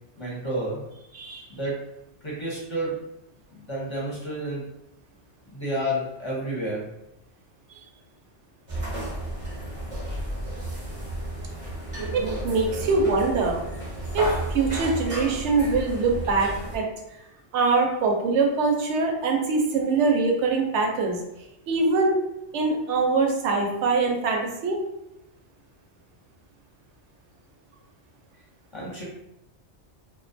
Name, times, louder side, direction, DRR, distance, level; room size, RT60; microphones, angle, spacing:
voice 1, 0.2-0.8 1.5-1.7 2.2-3.0 3.5-4.6 5.4-6.9 28.7-29.0, right 1 dB, 30° left, -5 dB, 0.6 m, -30 dB
voice 2, 1.1-1.5 12.1-13.6 14.1-17.2 17.5-21.2 21.7-22.2 22.5-24.8, right 3 dB, 80° right, 1 dB, 0.9 m, -23 dB
sound 1, 8.7-16.8, right 1 dB, 40° right, 0.5 m, -32 dB
2.5 x 2.2 x 2.5 m, 0.85 s
omnidirectional pair, 1.2 m